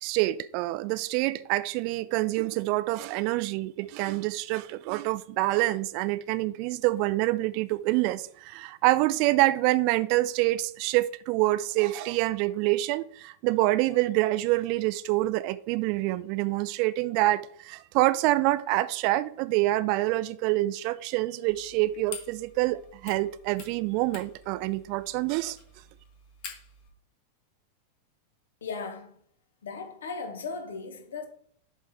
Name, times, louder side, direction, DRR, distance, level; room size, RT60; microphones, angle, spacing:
voice 1, 0.0-25.6, right 18 dB, 45° right, 0.4 m, -26 dB
sound 1, 21.5-26.9, left 5 dB, 45° left, 2.0 m, -47 dB
voice 2, 28.6-29.2 29.6-31.3, left 4 dB, 65° left, 1.3 m, -37 dB
7.1 x 4.2 x 4.7 m
figure-of-eight pair, 90°, 0 cm